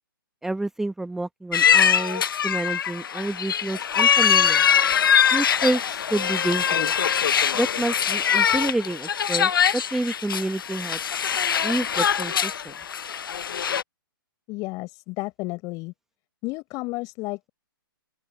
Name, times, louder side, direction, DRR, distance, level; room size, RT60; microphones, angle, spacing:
voice 1, 0.4-4.6 5.3-6.9 7.5-11.0 11.6-12.7, right 2 dB, 5° right, 1.1 m, -28 dB
sound 1, 1.5-13.8, left 8 dB, 65° left, 0.7 m, -22 dB
voice 2, 14.5-15.9 16.4-17.5, left 23 dB, 30° left, 5.8 m, -32 dB
open air
figure-of-eight pair, 125°, 12 cm